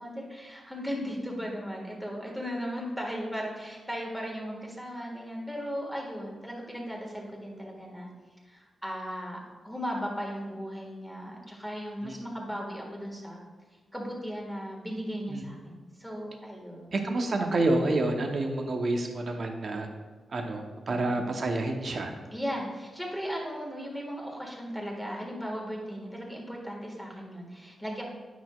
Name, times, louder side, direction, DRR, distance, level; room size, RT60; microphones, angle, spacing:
voice 1, 0.0-8.1 8.5-9.4 9.6-13.4 13.9-16.9 20.9-21.3 22.3-28.0, equal, ahead, -2 dB, 1.6 m, -36 dB
voice 2, 16.9-19.9 20.3-22.1, right 2 dB, 50° right, 3 dB, 0.8 m, -28 dB
9.2 x 6.1 x 2.3 m, 1.4 s
wide cardioid pair, 115°, 0 cm